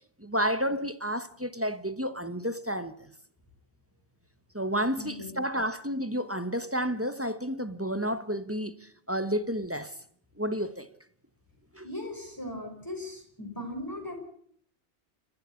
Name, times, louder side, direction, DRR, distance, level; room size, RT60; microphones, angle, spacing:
voice 1, 0.2-2.9 4.5-9.9 10.4-10.9 11.7-11.9, equal, 15° right, 1.0 m, -31 dB
voice 2, 5.0-5.3 11.8-14.2, left 1 dB, 20° left, 6.2 m, -38 dB
28.0 x 14.5 x 8.3 m
omnidirectional pair, 1.1 m